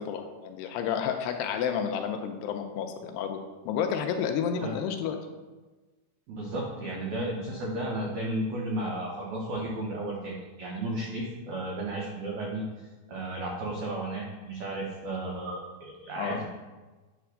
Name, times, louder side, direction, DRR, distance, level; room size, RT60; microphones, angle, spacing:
voice 1, 0.0-3.4 3.7-5.2 16.1-16.5, left 7 dB, 85° left, 5 dB, 2.6 m, -30 dB
voice 2, 6.3-16.5, right 1 dB, 80° right, -2 dB, 1.7 m, -34 dB
9.9 x 3.4 x 6.3 m, 1.2 s
omnidirectional pair, 4.9 m